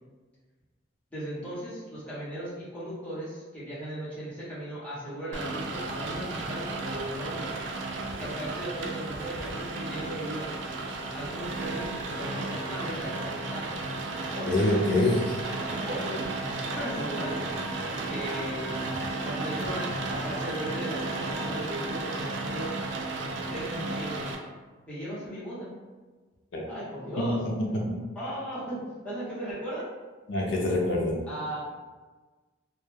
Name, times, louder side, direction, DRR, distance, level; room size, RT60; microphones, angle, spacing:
voice 1, 1.1-7.5 8.2-10.5 11.1-13.7 14.3-14.7 15.7-16.3 16.7-17.5 18.1-18.8 19.2-22.8 23.5-24.3 24.9-25.7 26.7-27.4 28.1-29.8 31.3-31.6, right 1 dB, 5° left, -10 dB, 0.8 m, -37 dB
Rain, 5.3-24.3, right 2 dB, 70° right, 0.3 m, -33 dB
voice 2, 14.5-15.4 26.5-26.7 27.2-28.0 30.3-31.2, left 1 dB, 65° left, -1 dB, 0.4 m, -26 dB
2.1 x 2.1 x 3.0 m, 1.3 s
head